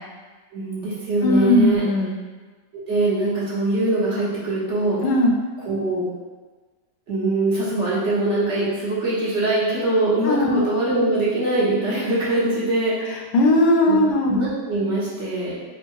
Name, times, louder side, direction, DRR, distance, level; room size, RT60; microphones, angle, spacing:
voice 1, 0.5-1.8 2.9-5.0 5.6-6.0 7.1-13.1 13.9-14.0 14.3-15.5, right 2 dB, 45° right, -8 dB, 1.3 m, -22 dB
voice 2, 1.2-2.1 5.0-5.3 10.2-10.7 13.3-14.4, left 1 dB, 75° left, 0 dB, 1.2 m, -18 dB
3.6 x 2.3 x 4.5 m, 1.3 s
omnidirectional pair, 1.8 m